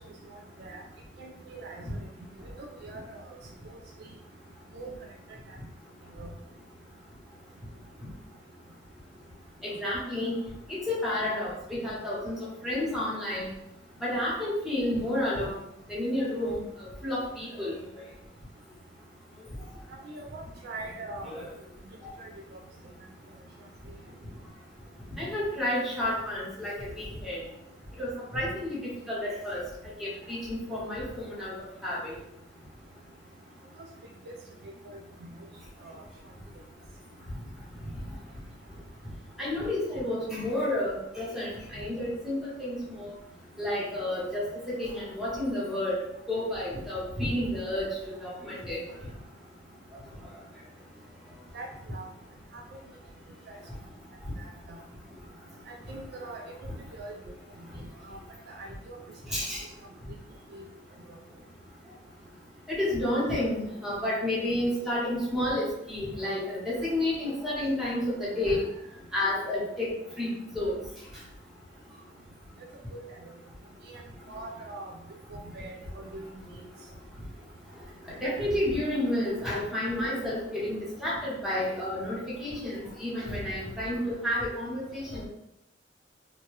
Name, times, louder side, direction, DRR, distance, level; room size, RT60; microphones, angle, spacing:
voice 1, 0.3-0.8 1.2-2.0 2.8-3.4 4.7-4.9 6.2-6.3 20.0-21.3 22.2-22.3 34.3-34.4 34.9-35.4 35.8-36.0 51.5-52.1 52.5-52.6 53.5-53.6 54.4-54.8 55.7-56.4 56.9-57.2 57.6-57.7 58.1-58.2 58.5-59.0 60.5-60.6 72.9-73.3 73.9-74.0 74.3-76.2, right 2 dB, 60° right, 2 dB, 0.3 m, -42 dB
voice 2, 9.6-10.3 10.9-12.3 12.6-13.5 14.0-15.6 15.9-16.6 17.0-17.8 25.2-27.4 28.0-28.8 29.1-29.6 30.0-31.5 31.8-32.1 39.4-43.1 43.6-46.0 46.3-47.9 48.2-48.8 59.3-59.6 62.7-68.6 69.1-69.9 70.2-70.3 70.5-70.7 78.1-85.3, left 1 dB, ahead, -8 dB, 1.0 m, -30 dB
2.8 x 2.2 x 3.1 m, 0.83 s
head